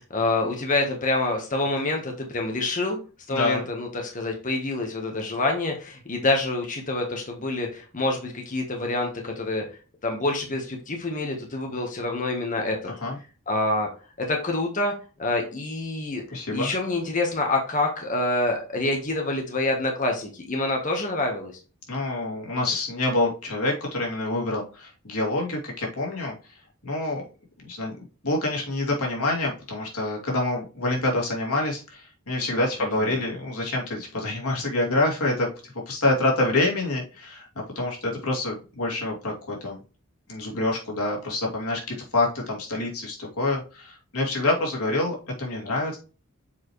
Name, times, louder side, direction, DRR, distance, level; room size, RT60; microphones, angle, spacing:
voice 1, 0.0-3.0 3.3-9.7 10.0-12.9 13.5-13.9 14.2-14.9 15.2-16.2 16.5-21.5 32.8-33.2, left 2 dB, 35° left, 2 dB, 1.3 m, -27 dB
voice 2, 3.3-3.6 13.0-13.2 16.3-16.8 21.9-26.3 26.8-27.2 27.6-39.8 40.3-46.0, left 2 dB, 90° left, -1 dB, 2.7 m, -27 dB
7.1 x 4.7 x 3.2 m, 0.35 s
head